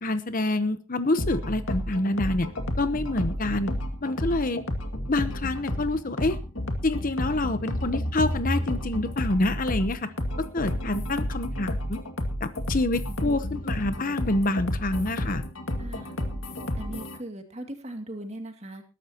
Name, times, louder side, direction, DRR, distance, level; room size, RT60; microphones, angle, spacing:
voice 1, 0.0-2.5 2.8-3.7 4.0-4.6 5.1-6.4 6.8-10.1 10.4-12.0 12.4-15.4, left 2 dB, 40° left, 11 dB, 0.9 m, -27 dB
sound 1, 1.2-17.2, left 1 dB, 65° left, 2.3 m, -31 dB
voice 2, 15.8-16.1 16.8-18.8, right 1 dB, 30° right, 5 dB, 2.4 m, -39 dB
21.0 x 12.0 x 2.9 m, 0.30 s
head